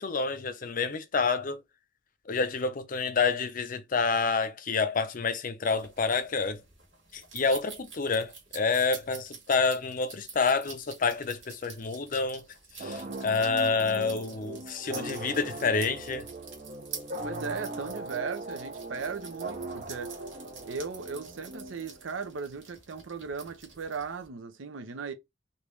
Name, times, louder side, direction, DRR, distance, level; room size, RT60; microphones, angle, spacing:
voice 1, 0.0-1.6 2.3-6.6 7.1-12.4 12.8-16.2, left 4 dB, 45° left, 0.5 m, -28 dB
sound 1, 5.7-24.3, right 5 dB, 65° right, 1.6 m, -48 dB
sound 2, 12.8-22.2, right 2 dB, 40° right, 0.6 m, -39 dB
voice 2, 12.8-13.2 17.2-20.1 20.6-25.1, right 5 dB, 85° right, 0.7 m, -37 dB
3.4 x 2.7 x 3.1 m
head